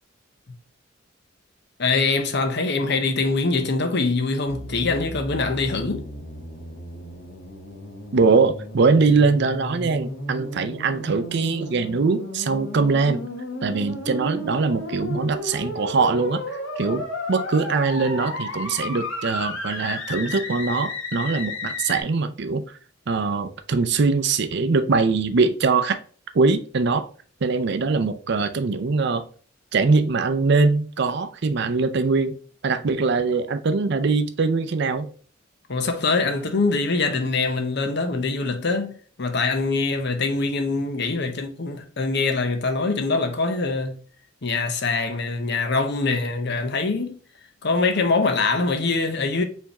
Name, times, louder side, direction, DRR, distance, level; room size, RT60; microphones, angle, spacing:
voice 1, 1.8-6.1 35.7-44.0 44.4-47.1 47.6-49.4, left 3 dB, 60° left, 0.8 m, -23 dB
sound 1, 4.4-22.0, left 2 dB, 90° left, 1.2 m, -34 dB
voice 2, 8.1-13.2 13.6-22.8 23.1-26.0 26.3-27.1 27.4-29.2 29.7-32.4 32.6-35.1, right 4 dB, 60° right, 0.5 m, -22 dB
4.5 x 3.4 x 2.8 m
head